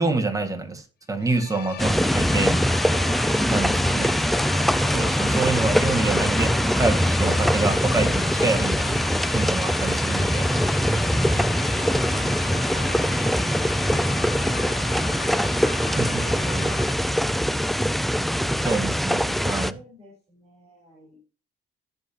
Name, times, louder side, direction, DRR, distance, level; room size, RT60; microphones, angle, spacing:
voice 1, 0.0-2.6 3.5-4.1 4.9-9.0 9.3-10.5 16.0-16.2 18.6-19.7, right 3 dB, 15° right, 5 dB, 1.9 m, -26 dB
sound 1, 1.2-16.9, left 9 dB, 55° left, 0.6 m, -37 dB
sound 2, 1.8-19.7, equal, ahead, 0.4 m, -22 dB
voice 2, 11.6-13.1 13.8-15.8 16.0-17.2 18.3-18.7 19.1-21.2, right 1 dB, 30° right, -3 dB, 5.0 m, -45 dB
15.5 x 5.4 x 2.9 m, 0.37 s
cardioid pair, 90°, 20 cm